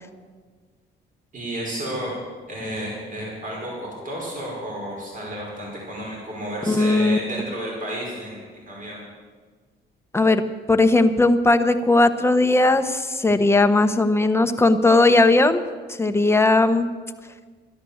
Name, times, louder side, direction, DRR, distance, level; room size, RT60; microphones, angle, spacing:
voice 1, 1.3-2.1 2.5-9.0, right 1 dB, 45° right, -3 dB, 5.4 m, -32 dB
voice 2, 6.7-7.2 10.1-10.4 10.7-15.6 16.0-16.9, left 2 dB, 15° left, 8 dB, 0.9 m, -18 dB
13.0 x 11.0 x 7.1 m, 1.5 s
cardioid pair, 90°, 20 cm